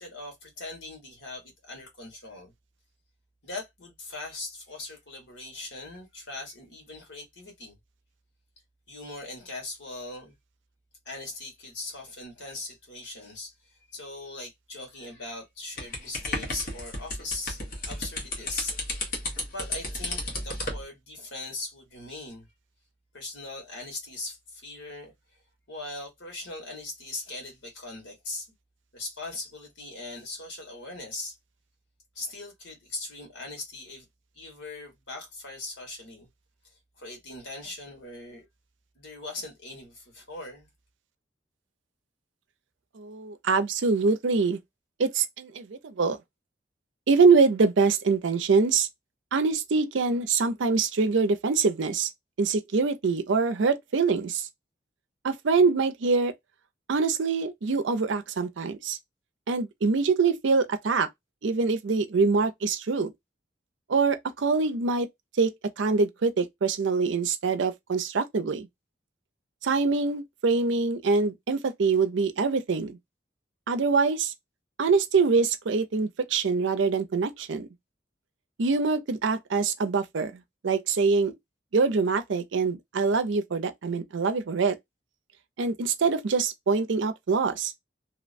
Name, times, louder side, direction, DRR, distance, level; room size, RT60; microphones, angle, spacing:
voice 1, 0.0-2.5 3.4-7.8 8.9-10.3 11.0-17.6 17.9-22.5 23.1-25.4 25.7-28.5 28.9-31.4 32.1-34.0 34.3-36.3 36.6-38.4 38.9-40.7, left 2 dB, 75° left, 1.4 m, -40 dB
sound 1, 15.8-20.8, left 2 dB, 45° left, 1.0 m, -33 dB
voice 2, 43.0-44.6 45.0-46.2 47.1-48.9 49.3-52.1 52.4-54.5 55.2-56.3 56.9-59.0 59.5-61.1 61.4-63.1 63.9-65.1 65.4-68.7 69.6-73.0 73.7-74.3 74.8-77.7 78.6-81.3 81.7-84.8 85.6-87.7, right 4 dB, 80° right, 0.5 m, -24 dB
2.8 x 2.1 x 2.5 m
head